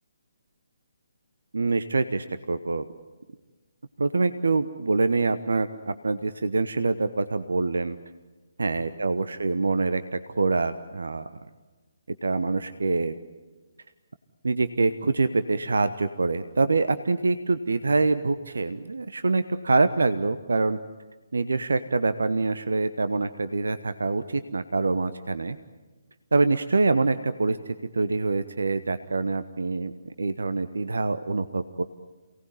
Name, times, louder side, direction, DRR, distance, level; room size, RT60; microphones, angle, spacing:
voice 1, 1.5-2.8 4.0-8.0 8.6-11.3 12.2-13.1 14.4-20.8 21.3-25.6 26.3-31.8, right 3 dB, 65° right, 11 dB, 1.0 m, -25 dB
27.5 x 18.5 x 9.5 m, 1.3 s
figure-of-eight pair, 140°, 0 cm